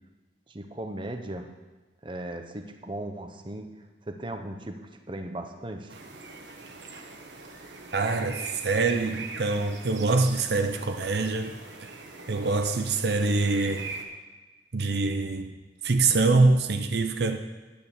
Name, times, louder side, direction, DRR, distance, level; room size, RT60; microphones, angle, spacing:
voice 1, 0.5-1.5 2.0-3.7 4.0-4.8 5.1-5.9, right 1 dB, 30° right, 5 dB, 1.0 m, -37 dB
sound 1, 5.9-14.0, right 3 dB, 90° right, 1.4 m, -42 dB
voice 2, 7.9-11.9 12.3-13.9 14.7-15.6 15.8-17.4, right 3 dB, 65° right, 6 dB, 0.7 m, -25 dB
10.5 x 9.3 x 7.3 m, 1.2 s
head